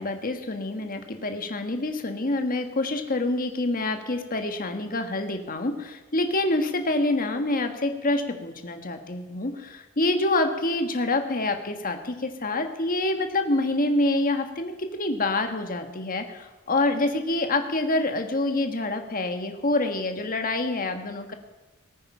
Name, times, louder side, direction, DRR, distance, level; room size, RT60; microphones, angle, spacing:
voice 1, 0.0-21.3, left 2 dB, 40° left, 6 dB, 1.5 m, -26 dB
19.5 x 9.2 x 5.6 m, 1.1 s
head